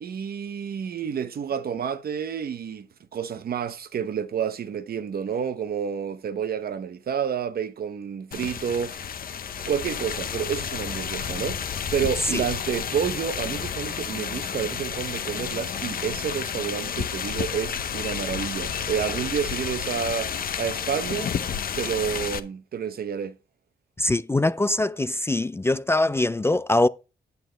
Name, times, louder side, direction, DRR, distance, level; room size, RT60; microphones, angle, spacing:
voice 1, 0.0-9.0 9.7-11.6 11.9-20.3 20.6-21.3 21.8-23.4, right 7 dB, 65° right, 0.8 m, -29 dB
sound 1, 8.3-22.4, left 7 dB, 60° left, 0.7 m, -31 dB
voice 2, 24.0-26.9, left 2 dB, 15° left, 0.3 m, -23 dB
8.9 x 8.2 x 3.3 m
cardioid pair, 90°, 17 cm